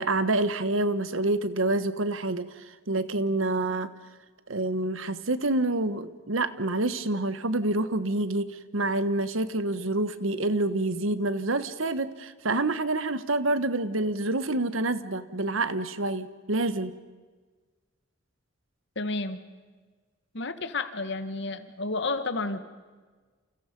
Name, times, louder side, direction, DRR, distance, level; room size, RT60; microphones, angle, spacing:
voice 1, 0.0-3.9 4.5-16.9, right 2 dB, 85° right, 12 dB, 1.3 m, -27 dB
voice 2, 18.9-19.4 20.3-22.6, left 3 dB, 60° left, 10 dB, 1.6 m, -31 dB
29.0 x 28.5 x 5.4 m, 1.4 s
head